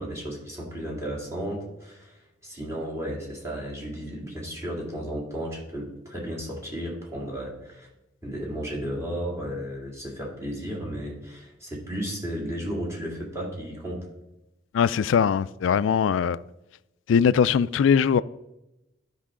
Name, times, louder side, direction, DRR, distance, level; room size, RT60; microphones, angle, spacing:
voice 1, 0.0-7.9 8.2-14.1, equal, 15° right, 2.5 m, -34 dB
voice 2, 14.7-16.4 17.1-18.2, left 7 dB, 80° left, 0.3 m, -21 dB
12.5 x 5.5 x 3.7 m
head